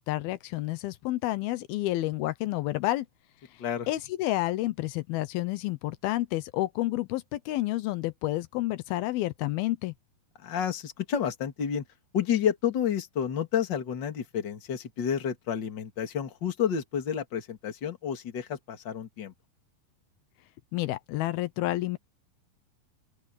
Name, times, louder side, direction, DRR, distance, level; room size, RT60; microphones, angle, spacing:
voice 1, 0.0-3.1 3.9-9.9 20.7-22.0, left 17 dB, 85° left, 2.7 m, -30 dB
voice 2, 10.4-11.8 12.1-19.3, left 8 dB, 35° left, 2.3 m, -30 dB
open air
omnidirectional pair, 4.3 m